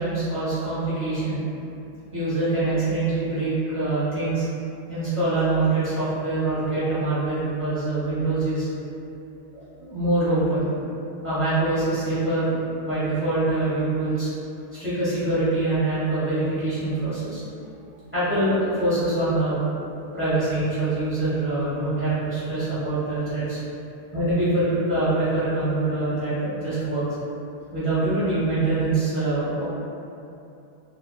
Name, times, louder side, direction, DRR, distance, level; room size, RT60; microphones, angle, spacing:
voice 1, 0.0-1.4 2.1-4.5 4.9-8.7 9.5-10.7 11.2-12.6 12.8-14.3 14.7-17.4 18.1-19.7 20.1-23.6 24.1-27.1 27.7-29.6, right 2 dB, 10° right, -14 dB, 1.0 m, -24 dB
2.5 x 2.3 x 2.3 m, 2.7 s
omnidirectional pair, 1.1 m